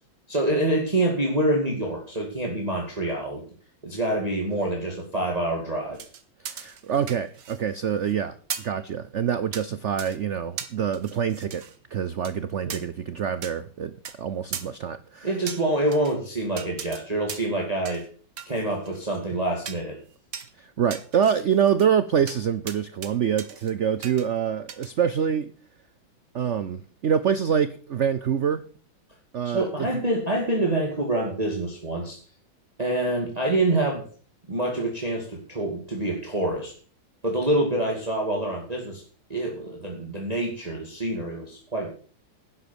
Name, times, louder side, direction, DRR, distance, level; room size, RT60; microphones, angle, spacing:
voice 1, 0.3-3.4 3.8-6.0 12.7-12.8 15.2-18.0 18.5-20.0 29.4-32.2 32.8-34.0 34.5-36.7 37.2-39.0 39.3-41.9, right 1 dB, 20° right, 2.5 m, -26 dB
sound 1, 6.0-7.7 8.0-8.1 8.5-8.8 9.5-9.7 10.0-10.2 10.6-11.8 12.3-12.4 12.7-12.8 13.4-13.5 14.1-14.2 14.5-14.7 15.5-16.2 16.6-17.0 17.3-17.6 17.9-18.1 18.4-19.2 19.7-19.9 20.3-20.5 20.9-21.9 22.3-22.4 22.7-23.1 23.4-23.7 24.0-24.3 24.7-24.9, right 7 dB, 60° right, 1.9 m, -37 dB
voice 2, 6.4-11.6 11.9-15.3 20.6-25.5 26.3-28.6 29.3-30.0, right 8 dB, 85° right, 0.6 m, -26 dB
11.5 x 9.8 x 7.0 m
omnidirectional pair, 2.2 m